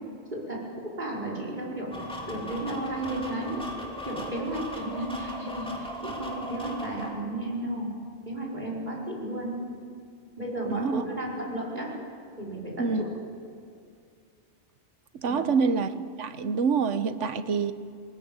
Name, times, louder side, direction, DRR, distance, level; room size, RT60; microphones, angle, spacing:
voice 1, 0.3-1.9 2.3-3.6 4.0-7.9 8.3-9.6 10.4-11.9 12.4-13.1 15.2-15.5, right 1 dB, 40° right, -3 dB, 5.4 m, -33 dB
sound 1, 1.9-7.1, equal, 5° left, 3.0 m, -38 dB
voice 2, 10.7-11.0 12.8-13.0 15.1-15.9 16.2-17.7, right 5 dB, 90° right, 12 dB, 1.3 m, -26 dB
21.0 x 20.0 x 8.8 m, 2.3 s
omnidirectional pair, 1.2 m